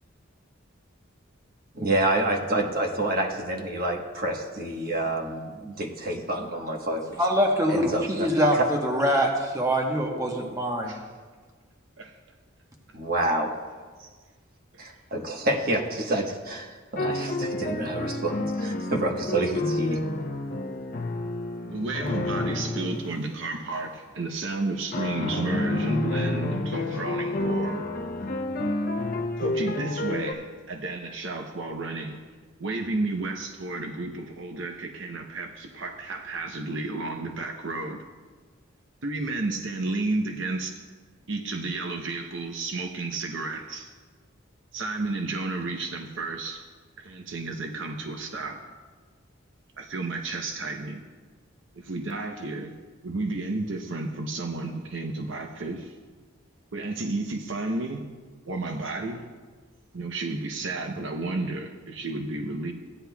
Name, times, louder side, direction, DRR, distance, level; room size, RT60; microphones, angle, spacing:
voice 1, 1.7-7.2 7.7-8.3 8.5-8.7 12.9-13.5 14.0-14.1 14.8-20.0, right 1 dB, 45° right, 1 dB, 1.2 m, -28 dB
voice 2, 7.2-8.6 8.8-10.9, equal, 15° right, 1 dB, 1.1 m, -24 dB
sound 1, 16.9-23.1 24.9-30.3, left 2 dB, 45° left, 0.7 m, -29 dB
voice 3, 21.6-27.9 29.4-32.2 32.6-38.0 39.0-40.8 41.3-43.9 44.7-46.6 47.0-48.6 49.8-51.0 51.7-52.8 53.0-56.0 56.7-58.0 58.5-59.2 59.9-62.7, right 2 dB, 65° right, 3 dB, 0.7 m, -32 dB
16.0 x 9.9 x 2.3 m, 1.5 s
head